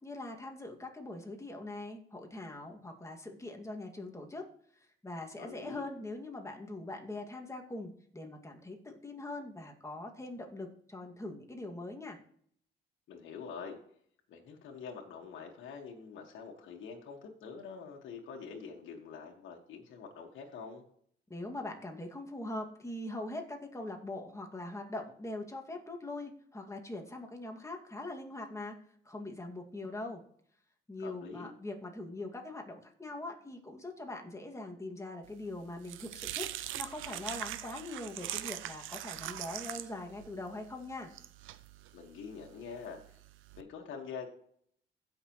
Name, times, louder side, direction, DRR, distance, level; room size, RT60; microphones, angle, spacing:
voice 1, 0.0-4.5 4.7-12.2 21.3-28.8 29.0-30.2 30.9-36.5 36.8-41.1, left 2 dB, 15° left, 2 dB, 2.1 m, -42 dB
voice 2, 5.4-5.8 13.1-13.8 14.3-20.8 31.0-31.5 41.9-43.0 43.6-44.3, left 6 dB, 75° left, 1 dB, 1.7 m, -45 dB
sound 1, 35.3-43.6, right 13 dB, 85° right, 0.6 m, -42 dB
16.0 x 6.0 x 3.1 m, 0.63 s
cardioid pair, 90°, 20 cm